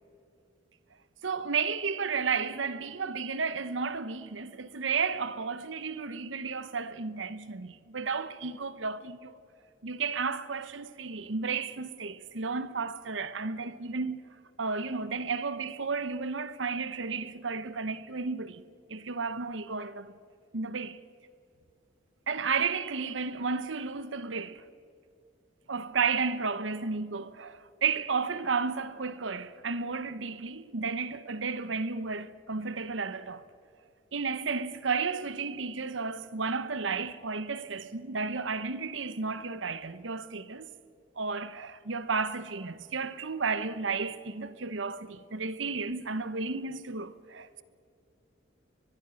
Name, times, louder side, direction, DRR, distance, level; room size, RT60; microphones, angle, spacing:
voice 1, 1.2-9.3 9.8-14.2 14.6-18.6 18.9-20.1 20.5-21.0 22.3-24.6 25.7-33.5 34.1-40.7 41.2-47.6, right 5 dB, 90° right, 1.0 m, -33 dB
22.5 x 22.0 x 6.4 m
head